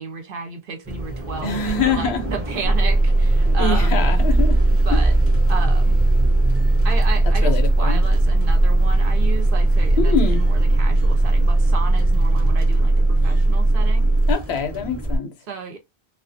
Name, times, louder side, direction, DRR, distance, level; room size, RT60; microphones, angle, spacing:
voice 1, 0.0-4.0 4.9-5.1 5.5-6.0 6.8-14.1 15.5-15.8, right 5 dB, 60° right, 0.7 m, -33 dB
sound 1, 0.8-15.2, right 1 dB, 15° right, 0.6 m, -28 dB
voice 2, 1.4-2.2 3.5-4.6 4.9-5.0 7.4-8.0 10.0-10.4 14.3-15.3, left 5 dB, 75° left, 0.8 m, -24 dB
sound 2, 2.6-14.3, right 2 dB, 50° left, 0.5 m, -18 dB
2.3 x 2.1 x 2.5 m
omnidirectional pair, 1.1 m